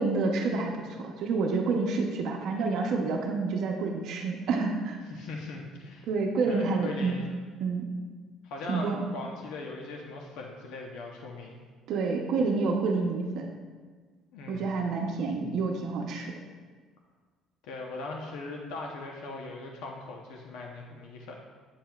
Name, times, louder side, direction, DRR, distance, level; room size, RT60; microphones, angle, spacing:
voice 1, 0.0-5.0 6.1-7.2 7.6-7.9 8.7-9.0 11.9-13.5 14.5-16.3, right 4 dB, 60° right, 1 dB, 0.7 m, -28 dB
voice 2, 5.1-6.1 6.5-7.4 8.4-11.6 14.3-14.8 17.6-21.4, left 3 dB, 85° left, 0 dB, 0.8 m, -40 dB
8.6 x 7.6 x 2.3 m, 1.5 s
cardioid pair, 150°, 0 cm